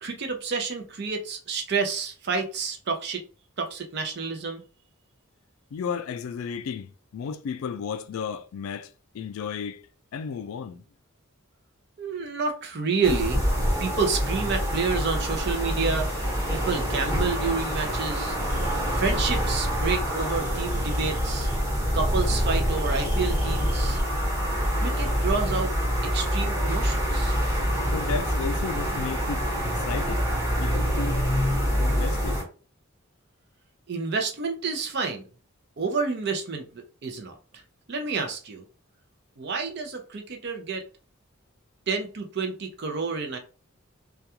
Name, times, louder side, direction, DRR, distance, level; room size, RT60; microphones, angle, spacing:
voice 1, 0.0-3.2 3.6-4.6 12.0-13.4 13.8-16.1 16.5-18.4 19.0-21.5 21.9-24.0 24.8-25.7 26.1-27.4 33.9-35.2 35.8-37.4 37.9-38.6 39.4-40.8 41.9-43.4, right 4 dB, 50° right, 0.5 m, -29 dB
voice 2, 5.7-9.8 10.1-10.8 27.9-30.3 30.6-31.2 31.8-32.4, left 6 dB, 85° left, 0.3 m, -34 dB
sound 1, 13.0-32.4, equal, 15° right, 1.0 m, -26 dB
sound 2, 18.5-24.0, equal, 35° right, 1.1 m, -28 dB
2.3 x 2.2 x 2.8 m
head